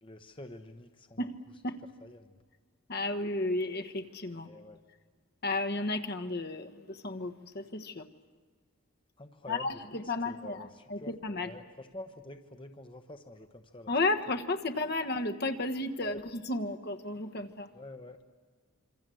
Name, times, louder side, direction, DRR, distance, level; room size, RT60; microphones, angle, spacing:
voice 1, 0.0-1.2 2.0-2.4 4.4-4.8 9.2-11.1 11.4-13.9 16.0-16.2 17.7-18.2, left 1 dB, 25° left, 6 dB, 1.1 m, -48 dB
voice 2, 1.2-1.8 2.9-4.5 5.4-8.1 9.5-11.5 13.9-17.7, left 2 dB, 50° left, 6 dB, 1.4 m, -33 dB
27.0 x 25.0 x 7.8 m, 1.5 s
head